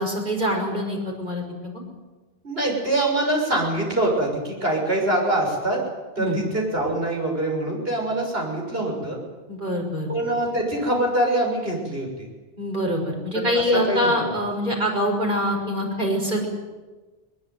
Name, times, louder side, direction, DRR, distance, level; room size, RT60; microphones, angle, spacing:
voice 1, 0.0-1.8 6.2-6.4 9.5-10.1 12.6-16.5, equal, 50° right, 0 dB, 6.4 m, -24 dB
voice 2, 2.4-5.8 6.2-9.2 10.1-12.1 13.3-13.4 13.7-14.1, right 1 dB, 70° right, 0 dB, 6.6 m, -24 dB
22.0 x 21.5 x 9.5 m, 1.2 s
omnidirectional pair, 1.0 m